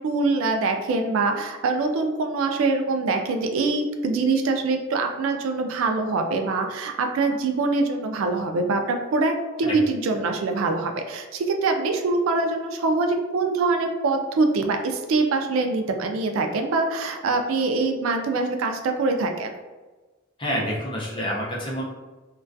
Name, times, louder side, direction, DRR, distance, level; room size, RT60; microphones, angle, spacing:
voice 1, 0.0-9.3 9.6-19.5, right 3 dB, 85° right, 5 dB, 0.3 m, -24 dB
voice 2, 20.4-21.8, equal, 25° left, -4 dB, 0.5 m, -28 dB
2.2 x 2.2 x 2.5 m, 1.3 s
head